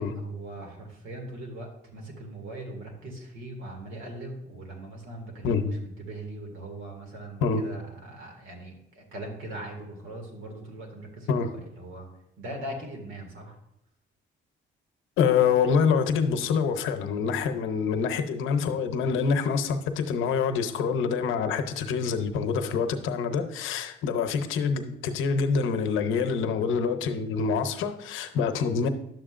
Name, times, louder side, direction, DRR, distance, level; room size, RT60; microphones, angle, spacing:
voice 1, 0.0-12.1 12.4-13.6, right 1 dB, 80° right, 2.2 m, -40 dB
voice 2, 15.2-28.9, left 6 dB, 85° left, 0.8 m, -26 dB
10.5 x 7.4 x 2.5 m
cardioid pair, 90°, 20 cm